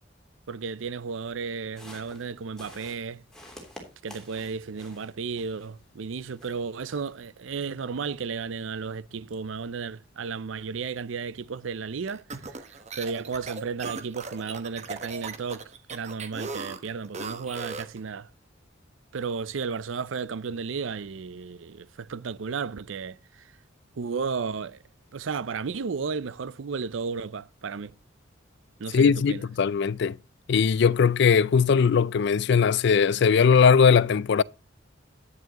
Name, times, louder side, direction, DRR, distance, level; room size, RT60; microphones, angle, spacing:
voice 1, 0.5-3.2 4.0-18.3 19.1-23.4 24.0-24.8 25.1-27.9 28.8-29.4, right 5 dB, 75° right, 0.5 m, -33 dB
sound 1, 1.8-5.8 6.2-7.2, left 1 dB, 5° left, 3.1 m, -49 dB
sound 2, 12.1-18.0, right 4 dB, 35° right, 1.1 m, -38 dB
voice 2, 28.9-30.2 30.5-34.4, left 6 dB, 60° left, 0.4 m, -20 dB
10.5 x 9.5 x 3.0 m
head